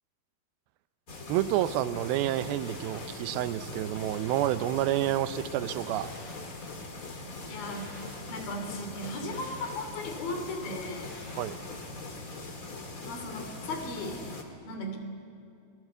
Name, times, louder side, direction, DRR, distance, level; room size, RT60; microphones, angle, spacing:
sound 1, 1.1-14.4, left 3 dB, 30° left, 1.9 m, -41 dB
voice 1, 1.3-6.1 11.4-11.6, right 13 dB, 80° right, 13 dB, 2.5 m, -29 dB
sound 2, 2.4-3.4 3.9-4.9 5.7-6.8 7.4-8.5 9.0-10.1 10.8-11.9, left 2 dB, 45° left, 6.5 m, -51 dB
voice 2, 7.5-8.0 8.3-11.1 13.0-14.2 14.6-15.0, left 1 dB, 70° left, 5 dB, 4.7 m, -37 dB
28.5 x 19.5 x 8.1 m, 2.5 s
omnidirectional pair, 4.5 m